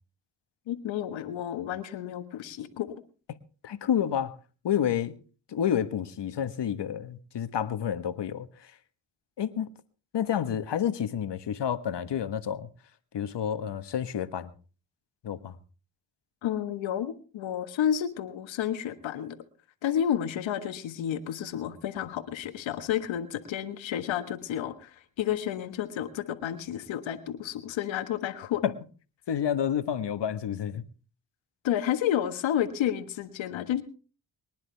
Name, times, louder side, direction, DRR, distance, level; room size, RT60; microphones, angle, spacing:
voice 1, 0.7-2.9 16.4-19.4 19.8-24.9 25.2-28.6 31.6-33.8, left 10 dB, 85° left, 1.5 m, -31 dB
voice 2, 3.6-4.3 4.6-5.2 5.5-8.5 9.4-9.7 10.1-12.7 13.1-14.5 15.2-15.6 28.6-28.8 29.3-30.8, left 9 dB, 65° left, 1.4 m, -29 dB
24.5 x 10.5 x 3.4 m
supercardioid pair, 45°, 45 cm